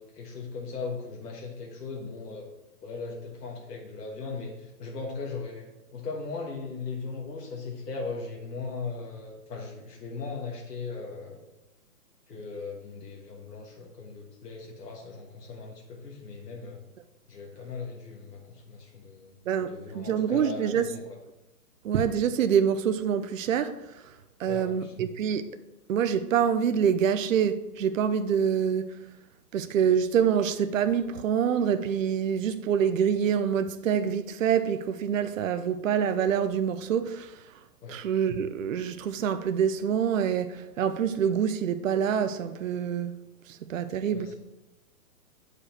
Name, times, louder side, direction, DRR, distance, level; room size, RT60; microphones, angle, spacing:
voice 1, 0.0-2.5 2.8-11.4 12.3-16.8 17.3-19.3 19.7-21.0 24.5-24.9 37.8-38.0 44.1-44.3, left 4 dB, 90° left, 1.5 m, -38 dB
voice 2, 19.5-20.9 21.8-24.0 24.4-25.5 25.9-29.0 29.5-37.4 37.9-43.2 43.5-44.3, right 8 dB, 55° right, 0.6 m, -26 dB
8.4 x 5.0 x 4.3 m
hypercardioid pair, 160°, 47 cm